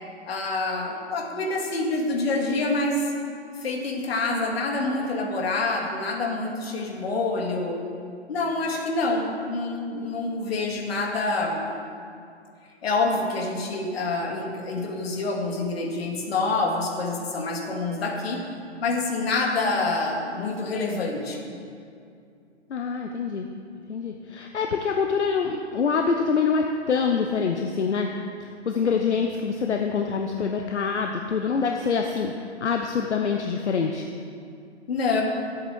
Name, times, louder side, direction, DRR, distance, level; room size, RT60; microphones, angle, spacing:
voice 1, 0.3-3.1 3.6-7.8 8.3-11.7 12.8-18.4 18.8-21.5 34.9-35.2, left 3 dB, 60° left, 1 dB, 2.3 m, -27 dB
voice 2, 22.7-23.5 23.9-28.1 28.4-34.0, left 5 dB, 80° left, 3 dB, 1.0 m, -25 dB
12.0 x 8.2 x 6.4 m, 2.4 s
hypercardioid pair, 135°, 34 cm